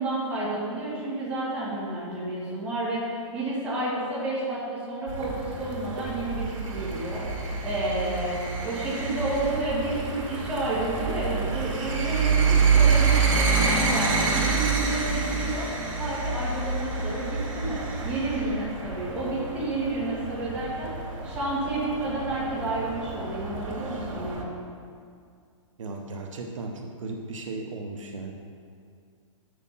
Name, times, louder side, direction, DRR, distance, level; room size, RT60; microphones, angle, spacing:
voice 1, 0.0-15.7 16.0-20.9 21.2-24.5, right 2 dB, 10° right, -10 dB, 2.1 m, -30 dB
sound 1, 5.1-24.4, right 5 dB, 90° right, 2.2 m, -27 dB
voice 2, 25.8-28.3, right 3 dB, 70° right, 2 dB, 0.9 m, -36 dB
7.2 x 6.6 x 5.6 m, 2.2 s
hypercardioid pair, 170°, 17 cm